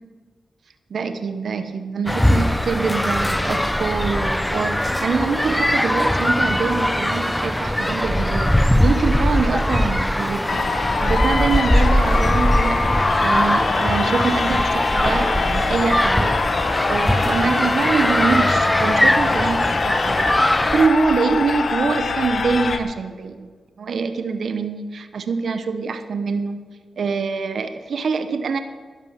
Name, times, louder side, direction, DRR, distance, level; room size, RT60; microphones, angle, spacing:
voice 1, 0.9-20.2 20.6-23.5 23.8-26.7 27.0-28.6, right 5 dB, 70° right, 9 dB, 0.9 m, -24 dB
sound 1, 2.1-20.9, left 1 dB, 10° left, 0.7 m, -20 dB
sound 2, 10.5-22.8, left 4 dB, 65° left, 1.0 m, -24 dB
13.5 x 10.5 x 5.9 m, 1.5 s
cardioid pair, 60°, 0 cm